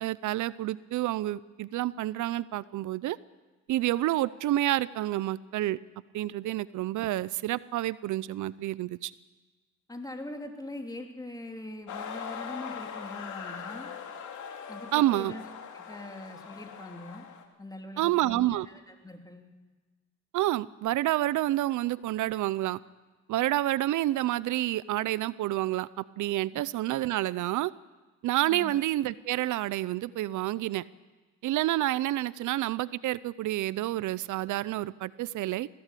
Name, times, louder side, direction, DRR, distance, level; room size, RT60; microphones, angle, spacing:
voice 1, 0.0-3.2 3.7-5.8 6.1-9.1 14.9-15.3 18.0-18.7 20.3-22.8 23.3-27.7 28.2-30.8 31.4-35.7, right 15 dB, 80° right, 19 dB, 0.6 m, -29 dB
voice 2, 9.9-13.9 14.7-15.4 15.7-17.2 17.6-19.5 28.5-28.7, left 1 dB, 10° left, 3 dB, 3.3 m, -42 dB
sound 1, 11.9-17.4, left 7 dB, 75° left, 2.7 m, -41 dB
21.5 x 16.0 x 8.4 m, 1.3 s
cardioid pair, 90°, 30 cm